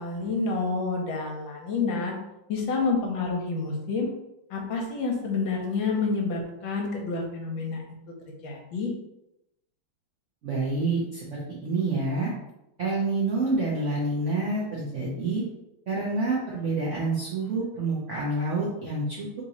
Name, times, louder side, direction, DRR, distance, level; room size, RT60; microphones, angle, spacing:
voice 1, 0.0-2.1 2.5-4.1 4.5-7.8 8.4-8.9, left 4 dB, 65° left, 1 dB, 1.4 m, -28 dB
voice 2, 10.4-12.3 12.8-15.4 15.9-19.3, right 3 dB, 65° right, -5 dB, 0.7 m, -28 dB
3.7 x 2.9 x 4.1 m, 0.88 s
omnidirectional pair, 2.3 m